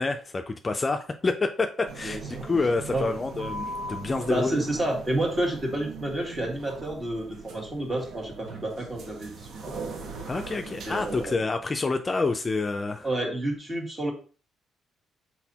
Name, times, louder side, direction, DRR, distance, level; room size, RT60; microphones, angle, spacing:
voice 1, 0.0-4.6 10.3-13.1, left 3 dB, 30° left, 6 dB, 0.4 m, -28 dB
sound 1, 1.9-11.3, right 3 dB, 70° right, 0.7 m, -39 dB
voice 2, 2.0-2.5 2.9-3.1 4.3-9.8 10.9-11.4 13.0-14.1, right 1 dB, 25° right, 0 dB, 1.7 m, -30 dB
4.1 x 4.1 x 2.8 m, 0.38 s
cardioid pair, 90°, 0 cm